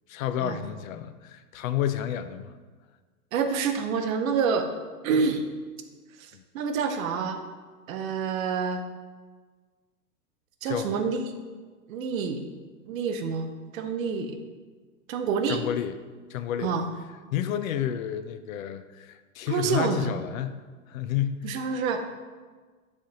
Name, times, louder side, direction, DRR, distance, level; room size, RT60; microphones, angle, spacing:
voice 1, 0.1-2.5 6.3-6.4 10.7-11.0 15.5-16.0 16.3-16.8 17.3-21.5, left 10 dB, 60° left, 11 dB, 0.5 m, -30 dB
voice 2, 3.3-4.7 5.0-5.4 6.2-7.4 7.9-8.8 10.6-11.2 11.9-12.4 12.8-14.4 15.1-15.6 16.6-16.8 19.5-20.1 21.4-22.0, right 5 dB, 60° right, 6 dB, 0.8 m, -27 dB
10.0 x 3.3 x 2.8 m, 1.4 s
hypercardioid pair, 110°, 46 cm